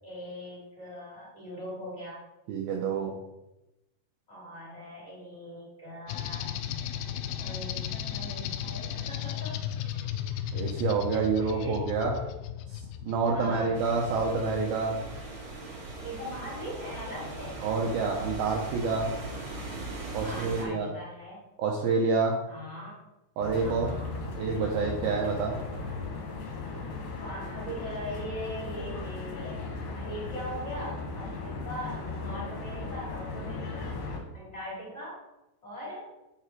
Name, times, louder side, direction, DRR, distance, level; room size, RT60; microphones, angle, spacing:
voice 1, 0.0-2.2 4.3-6.6 7.4-9.5 11.1-11.8 12.1-12.3 13.3-13.8 16.0-17.6 20.2-21.4 22.5-23.0 23.6-24.3 27.2-33.9 34.3-35.2 35.6-36.1, equal, 20° left, -6 dB, 2.5 m, -41 dB
voice 2, 2.5-3.1 10.5-12.2 12.7-15.0 17.6-19.1 20.1-20.9 21.6-22.4 23.4-24.0 24.4-25.6, right 4 dB, 75° right, 0 dB, 2.3 m, -28 dB
sound 1, 6.1-14.8, left 10 dB, 85° left, 2.2 m, -35 dB
sound 2, 13.7-20.6, right 2 dB, 60° right, 1.4 m, -39 dB
sound 3, 23.4-34.2, left 3 dB, 65° left, 2.5 m, -37 dB
8.4 x 4.8 x 4.6 m, 0.95 s
omnidirectional pair, 5.0 m